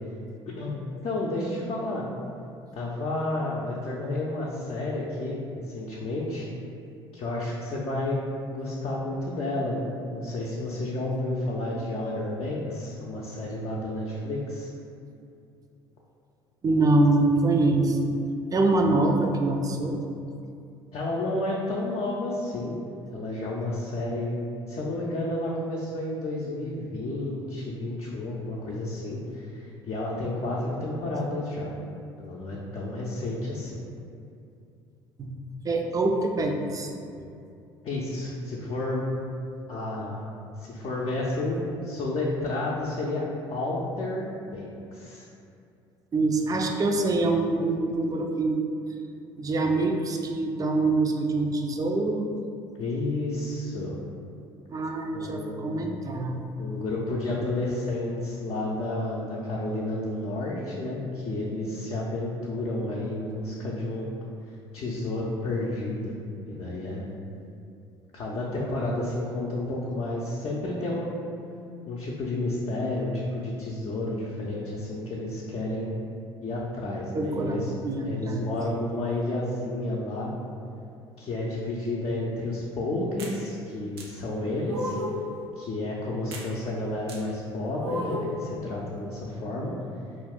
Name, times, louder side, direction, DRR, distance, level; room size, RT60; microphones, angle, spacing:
voice 1, 0.6-2.1 2.7-5.4 5.7-6.5 7.1-8.2 8.5-14.7 20.9-22.8 23.1-24.3 24.7-31.7 32.2-33.8 37.8-39.3 39.7-40.3 40.6-43.2 43.5-45.3 52.8-54.0 55.1-55.7 56.6-64.1 64.7-66.1 66.5-67.1 68.1-71.2 71.9-75.9 76.4-77.7 78.0-80.3 81.2-85.0 85.6-89.7, left 2 dB, 45° left, -5 dB, 0.5 m, -31 dB
voice 2, 16.6-18.2 18.5-20.0 35.2-35.4 35.6-36.9 46.1-48.6 49.4-52.3 54.7-56.5 77.1-78.5, right 2 dB, 25° right, 3 dB, 0.4 m, -25 dB
sound 1, 83.2-83.4 84.0-84.1 84.7-85.2 86.3-86.5 87.1-87.2 87.8-88.4, left 1 dB, 90° right, 0.4 m, -33 dB
2.5 x 2.3 x 3.5 m, 2.5 s
hypercardioid pair, 60°, 13 cm